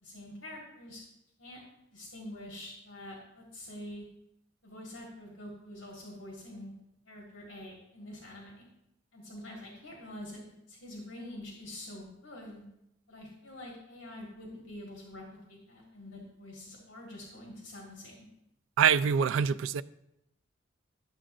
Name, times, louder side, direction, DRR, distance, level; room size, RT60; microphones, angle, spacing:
voice 1, 0.0-1.0 1.4-1.6 1.9-4.1 4.6-6.7 7.1-8.6 9.1-10.4 10.7-12.7 13.1-18.3, left 1 dB, 70° left, 1.8 m, -46 dB
voice 2, 18.8-19.8, right 7 dB, 75° right, 0.3 m, -25 dB
11.5 x 7.3 x 2.5 m
head